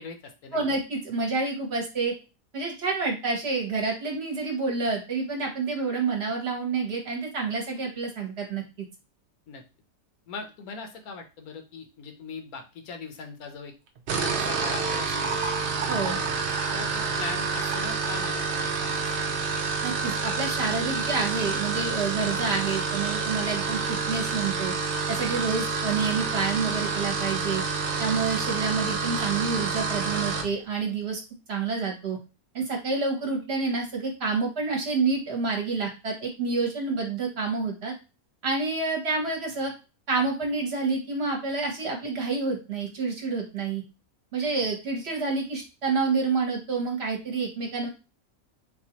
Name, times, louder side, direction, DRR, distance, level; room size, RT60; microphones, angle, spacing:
voice 1, 0.0-0.6 9.5-9.6 10.3-13.7 14.1-15.4 16.0-16.2 16.7-19.6, left 4 dB, 80° left, 5 dB, 1.1 m, -40 dB
voice 2, 0.5-2.1 2.5-8.9 15.9-16.2 19.8-24.7 25.1-27.6 28.0-31.2 31.5-32.2 32.5-37.9 38.4-39.7 40.1-43.8 44.3-47.9, right 4 dB, 50° right, 0 dB, 1.0 m, -28 dB
sound 1, 14.0-30.5, right 4 dB, 85° right, 0.4 m, -28 dB
4.0 x 2.2 x 2.8 m, 0.31 s
omnidirectional pair, 1.5 m